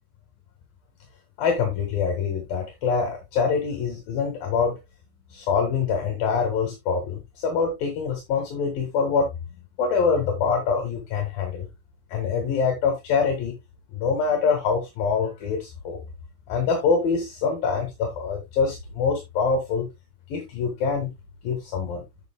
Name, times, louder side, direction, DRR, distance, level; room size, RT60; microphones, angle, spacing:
voice 1, 1.4-4.8 5.3-9.3 9.8-11.7 12.1-13.6 13.9-16.0 16.5-19.9 20.3-21.1 21.4-22.1, left 5 dB, 65° left, 3 dB, 3.3 m, -25 dB
12.0 x 7.6 x 2.3 m, 0.21 s
omnidirectional pair, 4.5 m